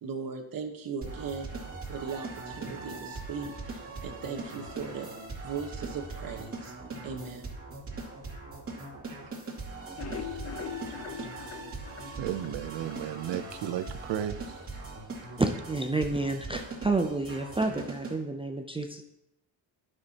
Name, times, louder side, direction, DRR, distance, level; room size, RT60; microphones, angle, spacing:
voice 1, 0.0-1.5 1.8-5.1 5.4-6.7 7.0-7.5, right 5 dB, 50° right, 4 dB, 1.3 m, -38 dB
sound 1, 1.0-18.1, right 3 dB, 30° right, 2.4 m, -40 dB
sound 2, 9.8-13.0 13.4-13.5 13.8-13.9 14.3-14.4, left 8 dB, 35° left, 0.6 m, -41 dB
voice 2, 12.2-14.4, right 11 dB, 70° right, 11 dB, 0.7 m, -33 dB
voice 3, 15.4-19.0, right 3 dB, 15° right, 4 dB, 0.4 m, -29 dB
11.5 x 6.2 x 2.9 m, 0.82 s
cardioid pair, 130°, 44 cm